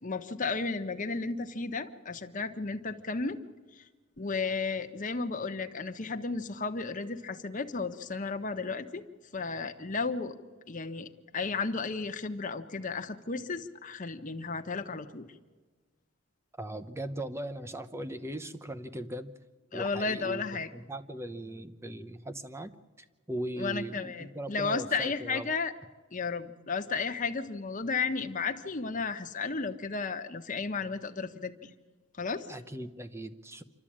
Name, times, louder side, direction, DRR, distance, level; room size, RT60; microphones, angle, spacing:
voice 1, 0.0-3.4 4.2-9.0 9.3-10.4 10.7-11.1 11.3-15.3 19.7-20.7 23.6-25.7 26.1-31.7 32.2-32.5, left 4 dB, 40° left, 7 dB, 1.0 m, -33 dB
voice 2, 16.6-19.3 19.7-20.4 20.7-22.7 23.3-25.5 32.5-33.6, right 1 dB, 15° right, 9 dB, 0.8 m, -39 dB
27.0 x 12.5 x 8.7 m, 1.4 s
head